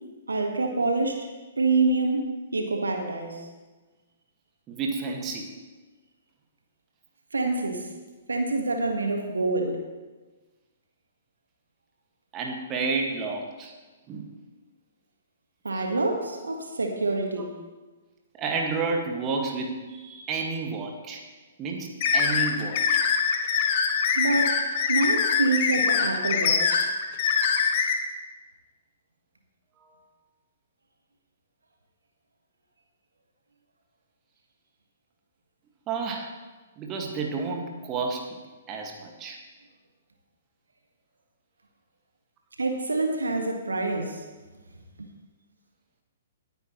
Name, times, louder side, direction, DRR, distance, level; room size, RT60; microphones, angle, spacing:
voice 1, 0.3-1.3 1.6-3.5 7.3-7.9 8.3-9.8 15.6-17.6 24.1-24.6 24.9-26.9 42.6-44.2 45.0-45.1, right 3 dB, 75° right, 3 dB, 1.6 m, -26 dB
voice 2, 4.7-5.5 12.3-13.7 14.1-14.3 15.7-15.9 18.4-21.2 21.6-23.0 29.8-29.9 35.9-36.3 36.8-38.3 38.7-39.4, right 4 dB, 25° right, 1 dB, 1.9 m, -31 dB
sound 1, 22.0-27.9, left 6 dB, 40° left, 1.5 m, -23 dB
19.5 x 9.7 x 3.2 m, 1.3 s
figure-of-eight pair, 120°, 0 cm